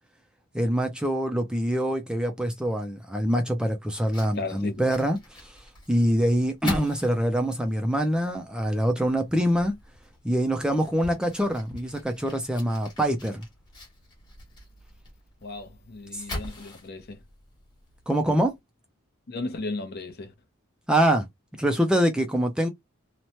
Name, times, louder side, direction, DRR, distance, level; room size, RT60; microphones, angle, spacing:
voice 1, 0.5-9.8 10.2-13.4 16.1-16.2 18.1-18.5 20.9-21.3 21.6-22.7, equal, 5° right, 0.3 m, -25 dB
Fire, 4.0-18.6, left 2 dB, 20° left, 1.2 m, -44 dB
voice 2, 4.4-4.9 15.4-17.2 19.3-20.3, left 3 dB, 45° left, 0.6 m, -35 dB
3.0 x 2.1 x 2.7 m
head